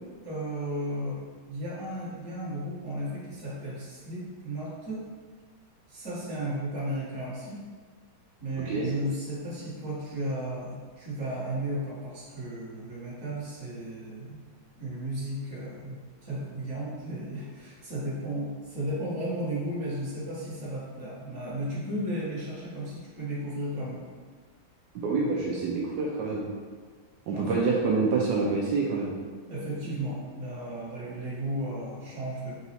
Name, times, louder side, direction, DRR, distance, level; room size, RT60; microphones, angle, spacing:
voice 1, 0.2-1.2 1.5-5.0 5.9-7.6 8.4-14.4 14.8-24.0 27.3-27.6 29.5-32.6, right 1 dB, 45° right, -8 dB, 1.4 m, -34 dB
voice 2, 25.0-26.5 27.3-29.1, right 4 dB, 80° right, -3 dB, 1.0 m, -27 dB
4.0 x 2.3 x 4.1 m, 1.5 s
omnidirectional pair, 2.4 m